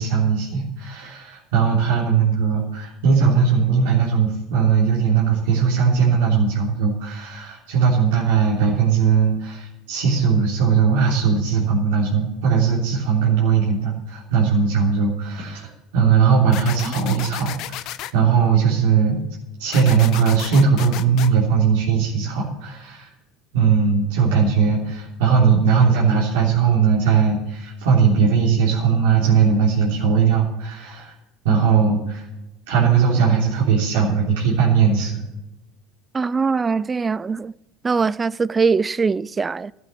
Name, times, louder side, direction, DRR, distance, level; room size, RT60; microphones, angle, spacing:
voice 1, 0.0-19.2 19.6-23.1 23.5-31.1 31.4-32.3 32.7-35.2, right 6 dB, 85° right, 3.4 m, -19 dB
sound 1, 16.5-18.1 19.7-21.3, left 14 dB, 60° left, 0.7 m, -33 dB
voice 2, 36.1-37.5 37.8-39.7, right 5 dB, 20° right, 0.3 m, -21 dB
12.5 x 7.8 x 8.4 m
supercardioid pair, 100°, 0 cm